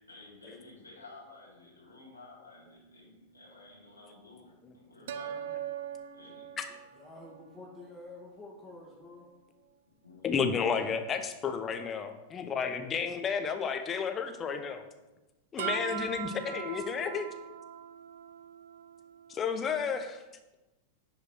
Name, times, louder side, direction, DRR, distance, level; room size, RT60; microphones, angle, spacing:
voice 1, 0.1-5.3 6.1-6.5 10.0-11.0, left 3 dB, 85° left, -6 dB, 1.9 m, -53 dB
sound 1, 2.6-2.7 5.1-8.2 8.7-8.8 15.6-20.0, right 9 dB, 60° right, 0.5 m, -41 dB
voice 2, 4.9-5.6 6.7-9.3, left 2 dB, 5° left, -7 dB, 2.0 m, -50 dB
voice 3, 10.2-14.8 15.5-17.3 19.3-20.2, left 6 dB, 25° left, 7 dB, 1.0 m, -32 dB
10.5 x 5.0 x 4.5 m, 1.0 s
figure-of-eight pair, 90°, 0 cm